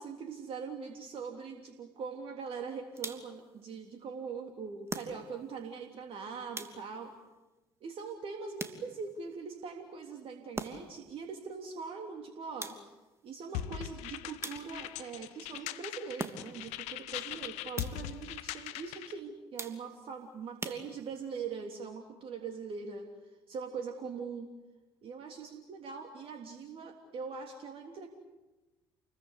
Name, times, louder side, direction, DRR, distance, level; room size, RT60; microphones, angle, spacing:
voice 1, 0.0-7.1 7.8-12.9 13.2-23.1 23.5-24.5 25.0-28.1, right 5 dB, 50° right, 4 dB, 3.3 m, -42 dB
sound 1, 3.0-3.5 4.9-5.5 6.5-7.1 8.6-9.2 10.5-11.1 12.6-13.1 14.4-15.0 16.2-16.7 17.7-18.2 19.6-20.1 20.6-21.3, right 3 dB, 20° right, 3.1 m, -42 dB
sound 2, 13.5-19.2, left 13 dB, 65° left, 1.2 m, -41 dB
29.5 x 22.5 x 8.2 m, 1.1 s
figure-of-eight pair, 60°, 12 cm